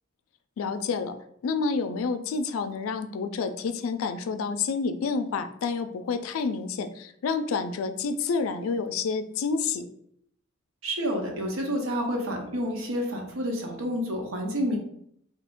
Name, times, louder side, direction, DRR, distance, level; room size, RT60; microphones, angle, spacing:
voice 1, 0.6-1.2 1.4-9.9, left 5 dB, 85° left, 9 dB, 0.3 m, -29 dB
voice 2, 10.8-14.8, equal, 90° right, 2 dB, 0.8 m, -29 dB
3.6 x 2.8 x 2.5 m, 0.70 s
head